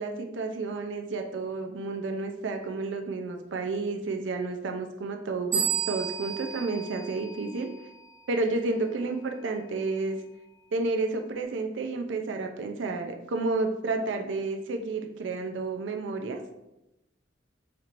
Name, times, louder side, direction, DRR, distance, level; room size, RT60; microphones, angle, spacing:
voice 1, 0.0-7.7 8.3-10.2 10.7-16.4, right 3 dB, 75° right, 5 dB, 0.5 m, -31 dB
sound 1, 5.5-8.0, right 8 dB, 10° right, 1.3 m, -32 dB
4.4 x 2.9 x 2.5 m, 0.92 s
head